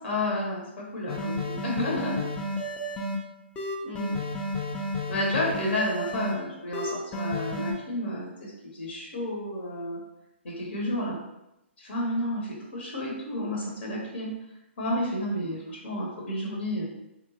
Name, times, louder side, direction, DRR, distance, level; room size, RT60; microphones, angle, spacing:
voice 1, 0.0-0.6 0.9-2.2 3.8-4.1 5.1-10.0 10.4-11.2 11.8-14.3 14.8-16.8, left 1 dB, 65° left, -3 dB, 0.9 m, -31 dB
sound 1, 1.1-3.2 3.6-6.3 6.7-7.7, left 1 dB, 15° left, 0.4 m, -31 dB
2.9 x 2.0 x 2.8 m, 0.89 s
hypercardioid pair, 135°, 7 cm